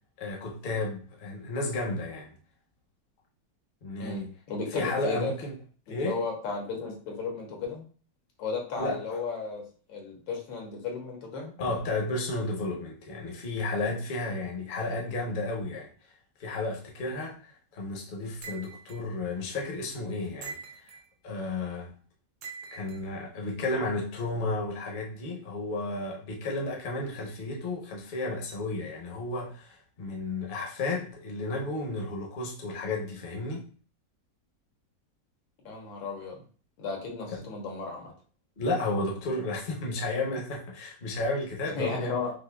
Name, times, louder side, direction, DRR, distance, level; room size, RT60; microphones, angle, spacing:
voice 1, 0.2-2.4 3.8-4.3 4.7-5.5 5.9-6.2 8.8-9.2 11.6-15.9 16.4-20.6 21.2-21.9 22.7-33.7 37.3-37.4 38.6-42.2, left 2 dB, 50° left, -1 dB, 0.6 m, -32 dB
voice 2, 4.5-5.3 5.9-7.8 8.4-9.6 9.9-11.5 18.4-18.6 35.6-36.4 36.8-38.1 41.7-42.3, left 4 dB, 90° left, 0 dB, 1.7 m, -34 dB
sound 1, 18.4-19.0 20.4-21.1 22.4-23.0, right 5 dB, 85° right, 0.6 m, -42 dB
5.3 x 2.1 x 2.2 m, 0.41 s
omnidirectional pair, 2.0 m